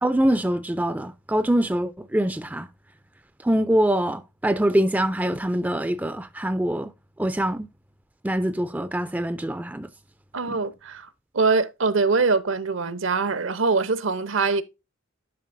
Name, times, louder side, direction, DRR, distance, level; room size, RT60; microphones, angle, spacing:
voice 1, 0.0-2.7 3.4-6.9 7.2-7.7 8.2-9.9 10.5-10.6, right 1 dB, 10° right, 0.3 m, -24 dB
voice 2, 10.3-11.1 11.3-14.6, right 4 dB, 70° right, 0.7 m, -23 dB
11.0 x 5.7 x 2.5 m
head